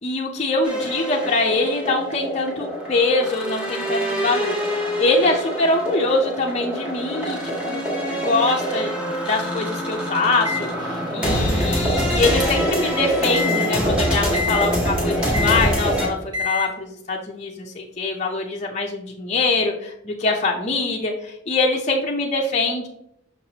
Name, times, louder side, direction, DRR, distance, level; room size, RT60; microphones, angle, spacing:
voice 1, 0.0-7.9 8.1-9.0 9.2-22.9, left 2 dB, 35° left, -1 dB, 0.6 m, -23 dB
sound 1, 0.6-16.1, equal, 5° right, 1.4 m, -25 dB
Microwave oven, 10.5-12.8 13.3-13.7 14.3-14.7 15.3-15.7 16.3-16.7, left 5 dB, 20° right, 1.0 m, -28 dB
6.0 x 5.7 x 2.8 m, 0.78 s
head